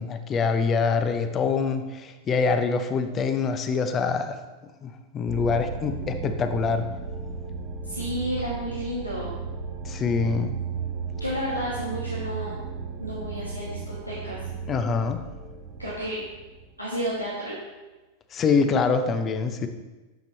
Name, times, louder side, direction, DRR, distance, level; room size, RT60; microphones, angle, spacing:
voice 1, 0.0-4.4 4.8-6.9 9.8-10.5 14.7-15.2 18.3-19.7, left 5 dB, 25° left, 9 dB, 0.7 m, -25 dB
sound 1, 5.3-17.2, right 5 dB, 30° right, 0.9 m, -35 dB
voice 2, 7.8-9.3 11.2-12.5 13.0-14.4 15.8-16.2 16.8-17.6, equal, 90° left, -5 dB, 1.3 m, -31 dB
9.1 x 6.8 x 3.2 m, 1.2 s
figure-of-eight pair, 90°, 0 cm